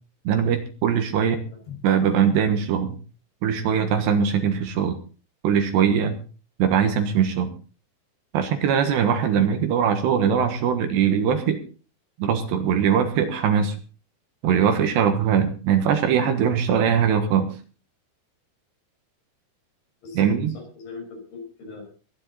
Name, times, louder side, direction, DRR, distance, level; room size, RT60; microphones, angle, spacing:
voice 1, 0.2-1.4 1.8-3.0 3.4-5.0 5.4-6.2 6.6-7.5 8.3-11.6 12.2-13.7 14.4-17.5 20.2-20.6, right 8 dB, 70° right, 7 dB, 3.3 m, -21 dB
voice 2, 1.2-1.8 20.0-21.8, left 4 dB, 65° left, 2 dB, 7.4 m, -40 dB
22.0 x 10.0 x 4.2 m, 0.37 s
omnidirectional pair, 5.6 m